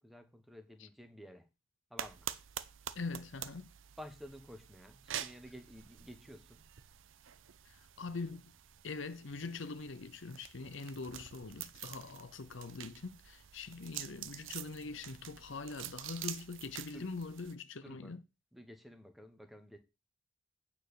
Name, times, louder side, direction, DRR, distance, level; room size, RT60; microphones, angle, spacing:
voice 1, 0.0-1.5 1.9-2.3 4.0-6.6 16.9-17.1 17.8-18.2 18.5-19.8, equal, ahead, 1.1 m, -52 dB
sound 1, 2.0-17.6, right 11 dB, 75° right, 0.6 m, -47 dB
voice 2, 2.9-3.7 7.7-8.4 8.8-18.2, left 3 dB, 70° left, 0.7 m, -43 dB
9.1 x 4.4 x 6.8 m
head